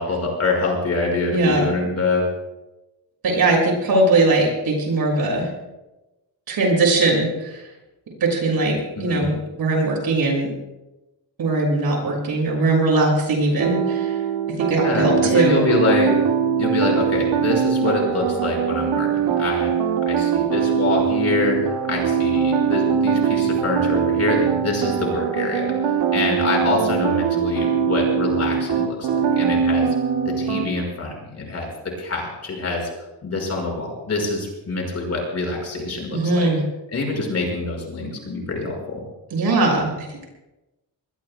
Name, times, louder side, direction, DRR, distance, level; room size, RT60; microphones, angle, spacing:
voice 1, 0.0-2.3 9.0-9.3 14.8-16.1 16.6-19.7 20.0-21.6 21.9-25.7 26.1-29.9 30.2-32.9 33.2-36.5 36.9-39.0, left 3 dB, 35° left, 0 dB, 5.6 m, -25 dB
voice 2, 1.3-1.7 3.2-5.5 6.5-7.6 8.2-10.5 11.4-14.2 14.5-15.6 36.1-36.6 39.3-40.2, right 2 dB, 60° right, 0 dB, 6.7 m, -20 dB
sound 1, 13.6-30.7, right 7 dB, 85° right, 2.0 m, -22 dB
26.5 x 21.0 x 2.3 m, 1.0 s
cardioid pair, 150°, 41 cm